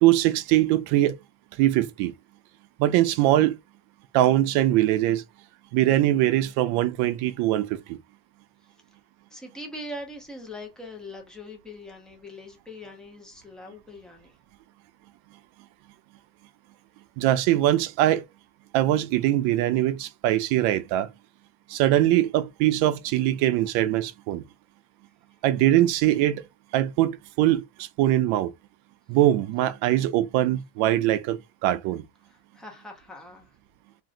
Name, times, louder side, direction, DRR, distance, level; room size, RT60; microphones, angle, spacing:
voice 1, 0.0-1.2 1.6-2.1 2.8-3.6 4.1-5.2 5.7-8.0 17.2-18.2 18.7-21.1 21.7-24.4 25.4-26.4 26.7-28.5 29.1-32.0, right 14 dB, 60° right, 0.5 m, -22 dB
voice 2, 9.3-14.4 32.3-33.5, left 1 dB, ahead, 0.3 m, -41 dB
2.5 x 2.0 x 3.7 m
cardioid pair, 155°, 43 cm